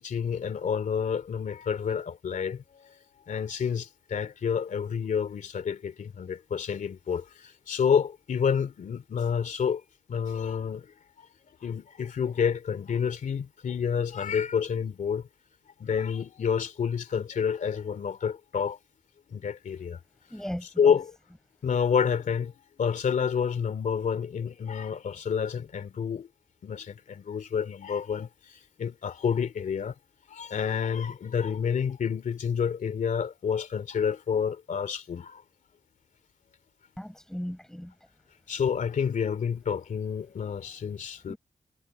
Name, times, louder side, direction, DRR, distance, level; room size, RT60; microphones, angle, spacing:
voice 1, 0.0-2.6 3.3-7.2 7.7-9.8 10.1-10.8 11.6-15.2 15.8-18.8 19.3-20.0 20.6-21.1 21.6-22.5 22.8-26.3 26.6-28.3 28.8-29.9 30.3-35.4 38.5-41.3, left 7 dB, 80° left, 2.7 m, -29 dB
voice 2, 20.3-20.7 37.0-37.9 41.3-41.4, equal, 5° left, 7.6 m, -36 dB
cardioid pair, 65°, 13 cm